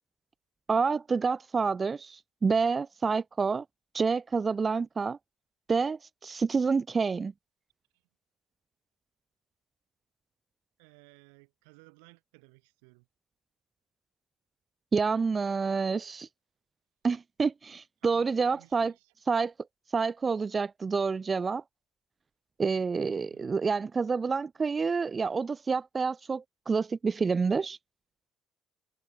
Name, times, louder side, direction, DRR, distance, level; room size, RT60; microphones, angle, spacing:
voice 1, 0.7-3.6 3.9-5.2 5.7-7.3 14.9-16.3 17.0-18.9 19.3-19.5 19.9-21.6 22.6-27.8, right 5 dB, 30° right, 0.4 m, -28 dB
voice 2, 10.8-13.1 18.0-19.1 23.3-23.8, right 36 dB, 90° right, 4.1 m, -58 dB
supercardioid pair, 75°, 0 cm